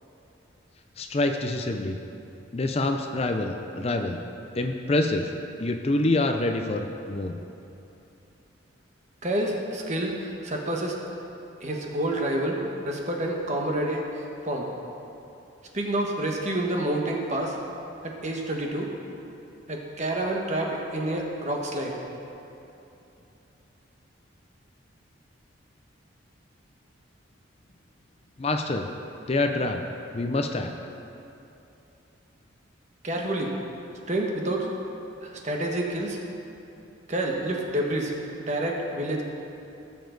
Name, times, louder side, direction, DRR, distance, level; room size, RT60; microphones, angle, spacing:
voice 1, 1.0-2.0 2.5-4.2 4.5-5.3 5.6-7.4 28.4-28.9 29.3-29.8 30.1-30.7, left 2 dB, 30° left, 5 dB, 0.5 m, -26 dB
voice 2, 9.2-11.0 11.6-12.6 12.8-14.0 14.4-14.7 15.7-17.6 18.0-18.9 19.7-21.9 33.0-33.5 34.1-34.7 35.2-36.2 37.1-38.1 38.4-39.2, right 1 dB, 35° right, 0 dB, 1.3 m, -28 dB
17.5 x 7.2 x 3.9 m, 2.9 s
head